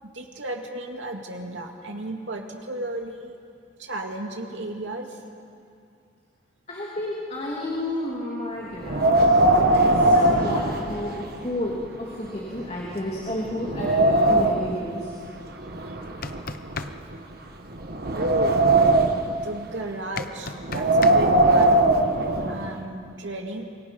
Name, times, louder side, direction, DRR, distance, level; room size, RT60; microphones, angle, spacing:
voice 1, 0.0-3.4 3.8-5.2 15.9-16.0 18.2-18.6 19.3-21.9 22.4-23.6, right 1 dB, 85° right, 2 dB, 2.4 m, -33 dB
voice 2, 6.7-9.3 9.7-15.1, left 1 dB, 35° left, -4 dB, 3.0 m, -31 dB
Wind, 8.8-11.4 11.8-11.9 12.6-12.7 13.2-14.8 15.6-17.2 17.7-19.3 20.6-22.7, right 2 dB, 55° right, 1.5 m, -20 dB
sound 1, 16.0-16.9 20.2-21.2, left 4 dB, 50° left, 0.8 m, -32 dB
27.0 x 23.5 x 5.5 m, 2.4 s
head